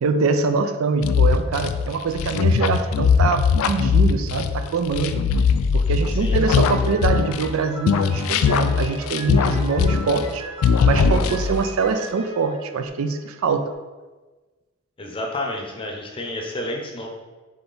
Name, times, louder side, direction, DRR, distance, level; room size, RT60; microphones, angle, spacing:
voice 1, 0.0-5.2 5.7-10.5 10.8-13.7, right 4 dB, 85° right, 8 dB, 0.4 m, -24 dB
sound 1, 1.0-7.6 7.9-10.4 10.6-11.7, left 5 dB, 85° left, 0.3 m, -20 dB
voice 2, 6.1-6.4 15.0-17.1, left 1 dB, 25° left, 1 dB, 0.6 m, -30 dB
Piano, 6.7-13.5, right 2 dB, 30° right, 1.0 m, -38 dB
3.8 x 3.4 x 3.9 m, 1.3 s
head